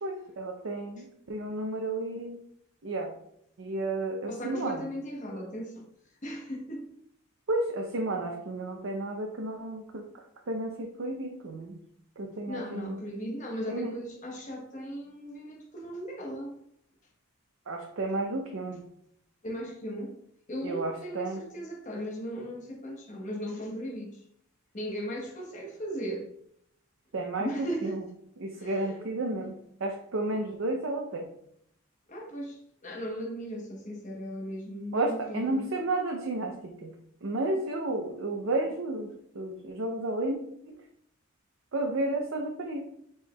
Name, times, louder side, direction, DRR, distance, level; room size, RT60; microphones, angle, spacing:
voice 1, 0.0-2.4 2.8-3.1 3.6-4.8 7.5-10.0 10.5-11.8 12.2-13.0 13.7-13.9 17.7-18.8 20.6-21.4 27.1-28.0 28.4-29.5 29.8-31.3 34.9-36.9 37.2-39.1 39.3-40.4 40.7-40.8 41.7-42.8, right 2 dB, 65° right, 0.6 m, -32 dB
voice 2, 4.3-5.8 6.2-6.9 12.5-16.6 19.4-20.2 20.5-24.2 24.7-26.3 27.4-28.0 28.6-29.1 32.1-35.7, equal, 35° left, 1.0 m, -37 dB
4.6 x 4.3 x 2.2 m
head